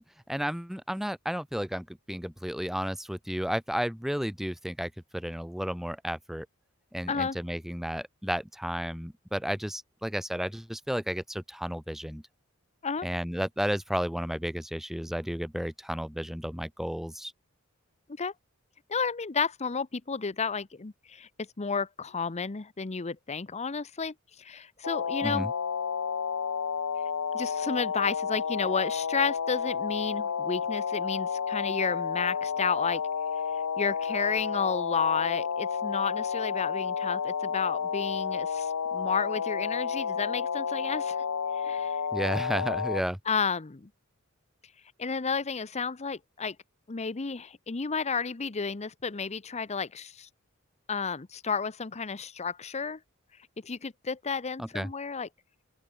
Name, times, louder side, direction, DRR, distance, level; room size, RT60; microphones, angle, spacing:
voice 1, 0.0-6.5 6.9-12.2 13.0-17.3 25.2-25.5 42.1-43.2 54.6-54.9, equal, ahead, 0.8 m, -32 dB
voice 2, 18.9-25.5 27.3-33.0 33.5-41.2 41.5-42.0 43.3-43.9 45.0-46.6 46.9-50.3 50.9-53.0 53.6-55.3, left 5 dB, 30° left, 0.7 m, -32 dB
sound 1, 24.8-43.0, left 6 dB, 85° left, 0.7 m, -31 dB
open air
head